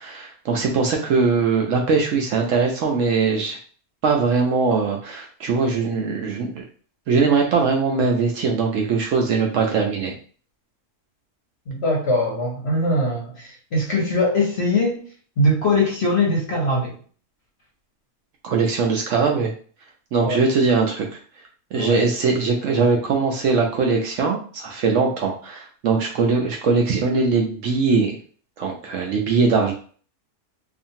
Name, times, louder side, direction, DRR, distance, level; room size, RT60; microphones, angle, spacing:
voice 1, 0.0-3.6 4.0-6.7 7.1-10.1 18.4-19.5 20.1-21.2 21.7-28.2 28.6-29.7, right 4 dB, 70° right, 1 dB, 0.8 m, -21 dB
voice 2, 11.7-15.0 15.4-17.0 20.2-20.4 21.7-22.0, left 1 dB, 55° left, -1 dB, 0.8 m, -21 dB
2.7 x 2.4 x 2.7 m, 0.43 s
omnidirectional pair, 1.6 m